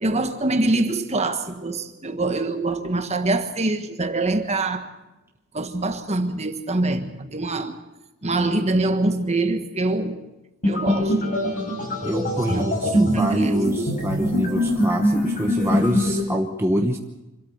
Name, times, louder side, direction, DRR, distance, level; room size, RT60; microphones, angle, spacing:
voice 1, 0.0-4.9 5.5-7.8 8.2-10.2 10.6-11.4 12.5-13.5 14.1-14.3, right 2 dB, 30° right, 1.5 m, -25 dB
sound 1, 10.6-16.2, equal, 40° left, 6.7 m, -23 dB
voice 2, 12.0-17.0, equal, 10° right, 1.1 m, -25 dB
25.5 x 13.0 x 8.0 m
head